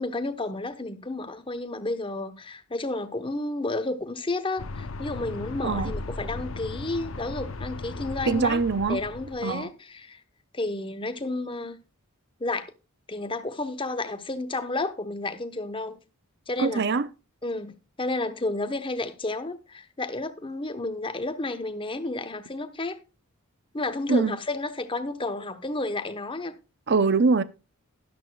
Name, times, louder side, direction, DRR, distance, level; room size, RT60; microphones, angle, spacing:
voice 1, 0.0-8.6 8.9-10.2 10.5-11.8 12.4-12.7 13.1-16.0 16.5-16.9 17.4-23.0 23.7-26.6, left 2 dB, 25° left, 1.0 m, -31 dB
sound 1, 4.6-9.6, left 3 dB, 65° left, 0.7 m, -36 dB
voice 2, 8.3-9.0 9.4-9.7 16.6-17.1 24.1-24.4 26.9-27.4, right 4 dB, 50° right, 0.6 m, -23 dB
12.5 x 11.0 x 2.3 m
head